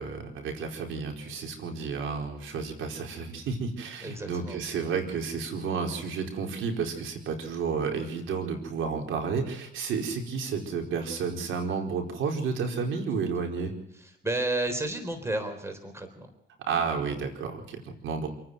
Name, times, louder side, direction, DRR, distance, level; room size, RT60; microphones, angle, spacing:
voice 1, 0.0-13.7 16.6-18.3, right 5 dB, 80° right, 3 dB, 4.6 m, -31 dB
voice 2, 4.0-4.6 14.0-16.3, right 2 dB, 15° right, 6 dB, 3.9 m, -32 dB
27.5 x 10.0 x 9.4 m, 0.79 s
cardioid pair, 90°, 20 cm